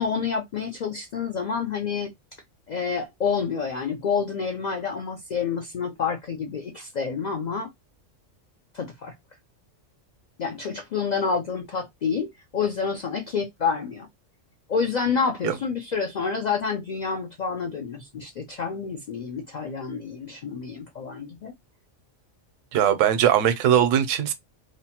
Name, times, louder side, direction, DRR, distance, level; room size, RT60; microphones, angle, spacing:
voice 1, 0.0-2.1 2.7-7.7 8.7-9.1 10.4-14.1 14.7-21.5, left 5 dB, 90° left, 0.3 m, -28 dB
voice 2, 22.7-24.3, right 10 dB, 80° right, 0.9 m, -20 dB
2.8 x 2.1 x 2.8 m
omnidirectional pair, 1.3 m